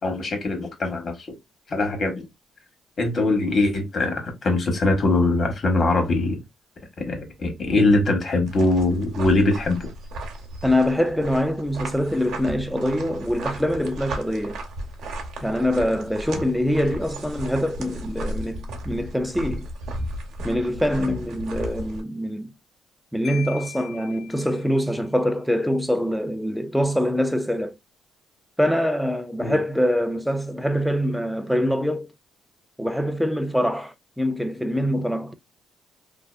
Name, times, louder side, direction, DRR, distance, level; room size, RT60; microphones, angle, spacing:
voice 1, 0.0-1.2 1.7-2.2 3.0-6.4 7.0-9.8 29.4-29.6, left 2 dB, 50° left, 1.1 m, -22 dB
sound 1, 8.5-22.0, right 1 dB, 75° right, 0.7 m, -35 dB
voice 2, 10.6-14.6 15.4-19.7 20.4-22.5 23.1-27.8 28.6-32.1 32.8-35.3, equal, ahead, 0.4 m, -24 dB
Marimba xylophone, 23.2-25.0, left 10 dB, 70° left, 1.3 m, -40 dB
2.6 x 2.2 x 2.2 m
cardioid pair, 90°, 0 cm